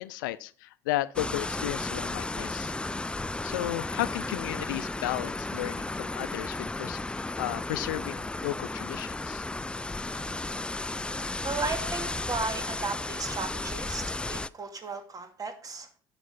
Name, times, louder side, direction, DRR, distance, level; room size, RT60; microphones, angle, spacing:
voice 1, 0.0-2.7 3.4-9.4, left 16 dB, 85° left, 0.5 m, -34 dB
sound 1, 1.2-14.5, left 2 dB, 10° left, 0.4 m, -34 dB
voice 2, 11.4-15.9, right 3 dB, 35° right, 2.3 m, -35 dB
10.0 x 6.0 x 5.5 m
hypercardioid pair, 70°, 10 cm